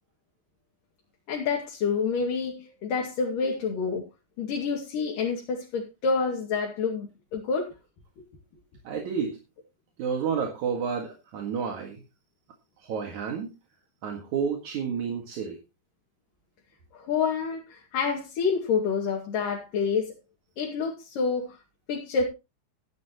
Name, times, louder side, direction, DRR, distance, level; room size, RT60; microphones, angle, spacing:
voice 1, 1.3-4.0 4.4-7.7 16.9-20.1 20.6-21.6 21.9-22.2, left 5 dB, 90° left, 0 dB, 4.0 m, -28 dB
voice 2, 8.8-9.4 10.0-12.0 12.8-13.5 14.0-15.6, right 6 dB, 65° right, 2 dB, 3.1 m, -30 dB
15.0 x 10.5 x 3.0 m, 0.27 s
omnidirectional pair, 3.7 m